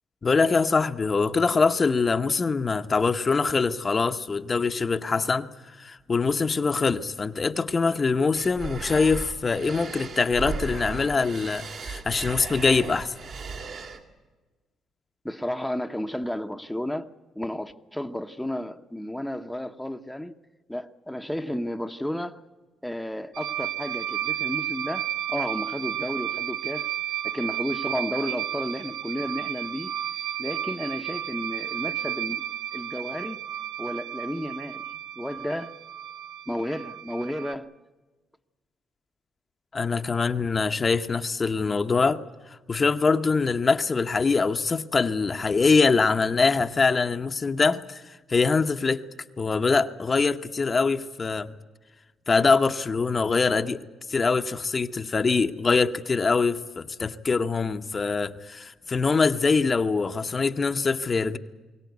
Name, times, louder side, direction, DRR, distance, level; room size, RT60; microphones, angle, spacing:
voice 1, 0.2-5.5 5.8-13.1 39.7-42.2 42.5-48.0 48.3-49.0 49.4-51.5 52.3-53.8 54.1-61.4, left 4 dB, 35° left, 0.9 m, -23 dB
sound 1, 8.3-14.0, right 4 dB, 60° right, 2.7 m, -36 dB
voice 2, 15.2-17.1 17.3-20.3 20.7-22.4 22.8-26.9 27.2-29.9 30.4-33.4 33.8-35.8 36.5-37.7, left 1 dB, 5° left, 0.9 m, -32 dB
sound 2, 23.3-37.5, right 11 dB, 90° right, 0.8 m, -32 dB
22.5 x 17.5 x 9.4 m
cardioid pair, 90°, 0 cm